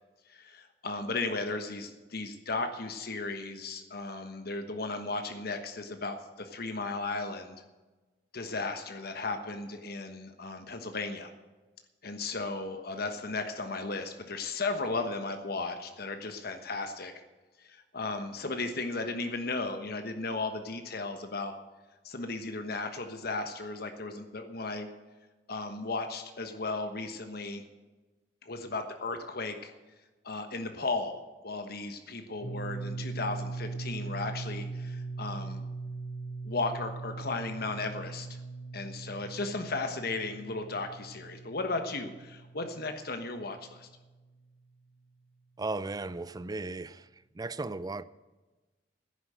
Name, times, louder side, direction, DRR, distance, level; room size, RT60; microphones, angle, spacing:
voice 1, 0.3-7.6 8.3-11.3 12.0-17.1 17.6-21.6 22.0-24.9 25.5-27.6 28.4-29.7 30.2-35.6 36.4-38.4 38.7-43.9, left 3 dB, 60° left, 1.3 m, -35 dB
sound 1, 32.4-44.1, right 3 dB, 80° left, 2.1 m, -40 dB
voice 2, 45.6-47.1 47.3-48.0, right 3 dB, 20° right, 0.5 m, -36 dB
10.5 x 10.5 x 7.8 m
head